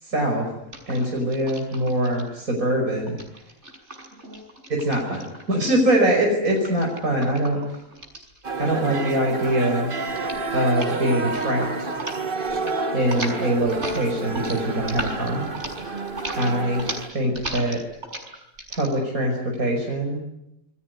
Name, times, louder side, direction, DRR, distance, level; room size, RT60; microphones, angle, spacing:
voice 1, 0.0-0.5 0.9-3.2 4.7-7.6 8.6-9.9 10.5-11.7 12.9-15.4 16.4-16.9 17.1-17.8 18.7-20.2, right 1 dB, 90° right, 0 dB, 6.3 m, -23 dB
Jar of pickles, 0.7-2.2 3.1-5.6 6.5-9.0 9.3-9.7 10.1-10.4 10.7-11.0 11.3-12.2 12.4-12.8 13.0-18.9, right 1 dB, 55° right, 6.7 m, -36 dB
sound 1, 8.4-17.1, right 3 dB, 40° right, 1.8 m, -29 dB
27.5 x 22.0 x 9.6 m, 0.86 s
omnidirectional pair, 1.4 m